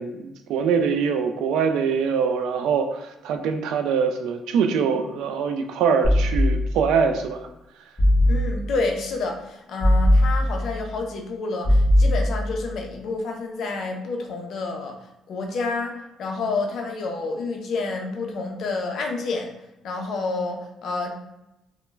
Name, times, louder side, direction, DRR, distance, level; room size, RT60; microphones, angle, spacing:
voice 1, 0.0-7.5, right 6 dB, 85° right, 6 dB, 0.3 m, -23 dB
sound 1, 6.0-7.1 8.0-8.9 9.8-10.9 11.6-12.7, left 1 dB, 10° left, 0.8 m, -20 dB
voice 2, 8.3-15.0 15.3-19.5 19.8-21.1, left 3 dB, 55° left, 2 dB, 0.5 m, -29 dB
2.2 x 2.1 x 3.1 m, 0.91 s
cardioid pair, 150°, 0 cm